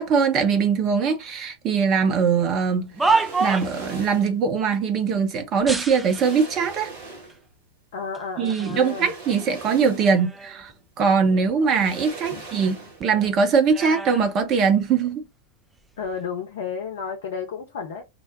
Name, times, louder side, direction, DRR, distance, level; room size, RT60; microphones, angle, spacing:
voice 1, 0.0-6.9 8.4-10.7 11.0-15.2, right 6 dB, 35° right, 0.8 m, -22 dB
sound 1, 2.6-3.9 5.6-6.5 7.3-7.4 8.1-8.8 9.3-10.7 11.1-12.8 13.0-15.2 15.9-16.2, right 4 dB, 10° right, 0.4 m, -29 dB
sound 2, 2.9-4.4 5.5-5.6 5.9-7.5 8.6-10.3 10.7-10.8 11.6-13.2 13.5-13.7, right 3 dB, 55° right, 1.4 m, -40 dB
voice 2, 7.9-9.1 12.3-12.4 16.0-18.0, left 6 dB, 60° left, 0.6 m, -32 dB
2.9 x 2.1 x 3.8 m
figure-of-eight pair, 90°, 0 cm